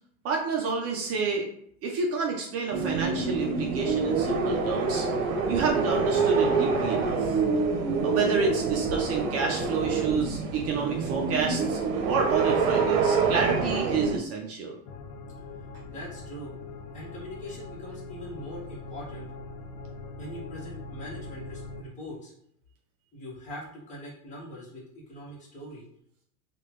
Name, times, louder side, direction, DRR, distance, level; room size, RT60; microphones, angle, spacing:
voice 1, 0.2-1.5 1.8-5.1 5.5-7.4 8.0-14.8, right 5 dB, 35° right, 0 dB, 0.6 m, -29 dB
sound 1, 2.7-14.2, right 4 dB, 70° right, 0.9 m, -26 dB
sound 2, 14.9-21.8, left 3 dB, 55° left, 0.6 m, -42 dB
voice 2, 15.9-16.5 16.9-19.3 20.2-22.3 23.1-25.8, equal, 20° left, -6 dB, 1.2 m, -42 dB
3.3 x 2.5 x 3.1 m, 0.68 s
supercardioid pair, 135°, 41 cm